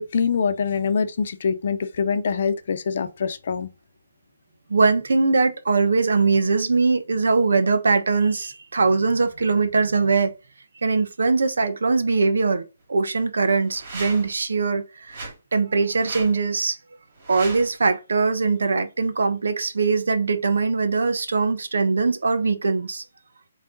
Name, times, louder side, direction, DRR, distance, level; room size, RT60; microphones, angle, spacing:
voice 1, 0.0-3.7, left 6 dB, 50° left, 0.7 m, -24 dB
voice 2, 4.7-10.3 10.8-16.8 17.3-23.0, right 4 dB, 80° right, 1.1 m, -21 dB
sound 1, 13.6-14.4 15.1-15.4 15.9-16.4 17.2-17.8, right 3 dB, 50° right, 3.1 m, -37 dB
7.5 x 3.3 x 3.9 m
hypercardioid pair, 170°, 0 cm